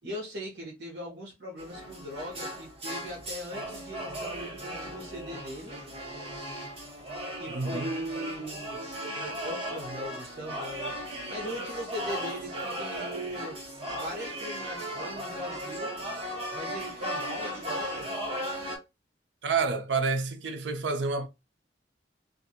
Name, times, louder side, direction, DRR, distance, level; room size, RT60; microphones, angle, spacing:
voice 1, 0.0-5.9 7.4-11.0 11.3-13.6 13.9-15.9 16.5-18.1, equal, 65° right, 1.0 m, -39 dB
sound 1, 1.6-18.8, equal, 35° right, 1.2 m, -36 dB
voice 2, 7.5-7.9 19.4-21.3, right 4 dB, 85° right, 0.5 m, -29 dB
2.5 x 2.5 x 2.7 m
head